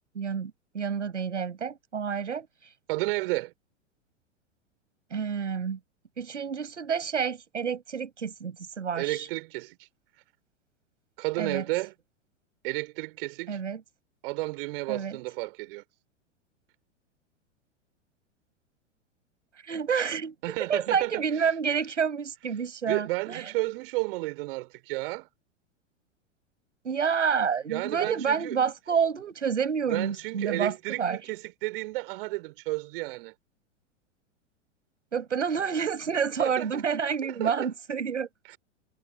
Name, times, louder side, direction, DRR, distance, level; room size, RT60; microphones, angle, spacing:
voice 1, 0.1-2.5 5.1-5.8 6.2-9.3 11.4-11.6 13.5-13.8 14.9-15.2 19.6-23.5 26.8-31.2 35.1-38.3, right 6 dB, 75° right, 7.7 m, -29 dB
voice 2, 2.9-3.5 8.9-9.9 11.2-11.9 12.6-13.6 14.2-15.8 20.4-21.2 22.9-25.3 27.7-28.6 29.9-33.3 36.4-36.8 37.2-37.7 38.5-38.6, right 21 dB, 50° right, 7.6 m, -32 dB
figure-of-eight pair, 95°, 37 cm